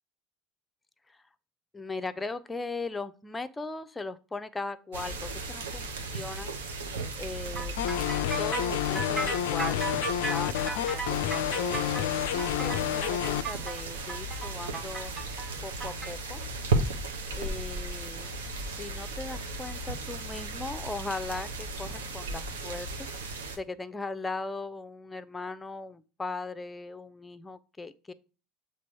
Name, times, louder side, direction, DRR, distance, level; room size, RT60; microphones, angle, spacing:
voice 1, 1.7-6.5 7.2-7.8 8.4-11.0 11.5-15.1 15.6-16.4 17.3-18.4 18.7-23.1 23.5-28.1, left 3 dB, 15° left, 13 dB, 0.6 m, -38 dB
sound 1, 4.9-23.6, right 2 dB, 70° right, 1.1 m, -35 dB
sound 2, 7.6-16.1, right 4 dB, 25° right, 1.5 m, -36 dB
sound 3, 7.8-13.4, left 11 dB, 65° left, 0.4 m, -29 dB
7.4 x 3.3 x 4.5 m, 0.35 s
figure-of-eight pair, 65°, 0 cm